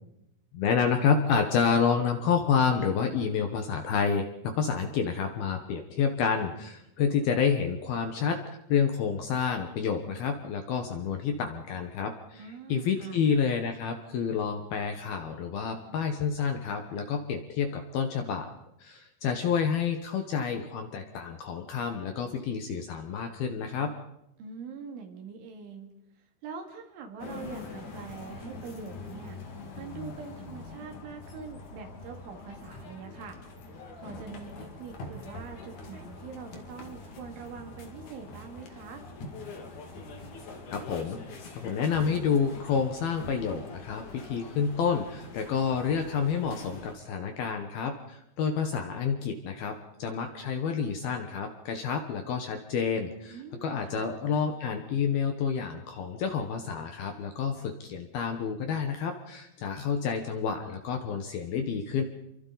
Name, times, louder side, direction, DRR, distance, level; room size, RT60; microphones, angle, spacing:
voice 1, 0.5-8.4 8.7-12.4 12.7-18.5 18.8-23.9 40.7-41.2 41.5-62.0, left 6 dB, 65° left, 5 dB, 2.6 m, -29 dB
voice 2, 12.4-13.2 24.4-25.9 26.2-29.4 29.8-33.4 34.0-39.0 53.3-54.1, right 5 dB, 75° right, 3 dB, 4.7 m, -44 dB
sound 1, 27.2-46.9, left 3 dB, 50° left, 2.9 m, -44 dB
28.5 x 23.5 x 4.1 m, 0.84 s
omnidirectional pair, 5.7 m